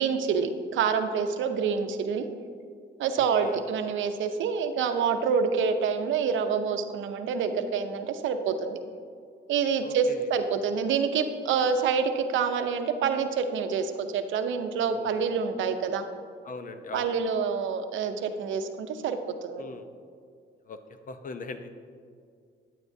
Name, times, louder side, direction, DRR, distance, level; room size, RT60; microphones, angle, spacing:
voice 1, 0.0-2.2 3.0-8.8 9.5-16.0 16.9-19.6, right 6 dB, 75° right, 8 dB, 0.7 m, -27 dB
voice 2, 3.2-3.6 9.8-10.3 14.9-15.2 16.4-17.1 19.6-19.9 20.6-20.8 21.1-21.7, left 3 dB, 45° left, 9 dB, 0.7 m, -40 dB
9.2 x 9.1 x 2.7 m, 2.2 s
cardioid pair, 90°, 20 cm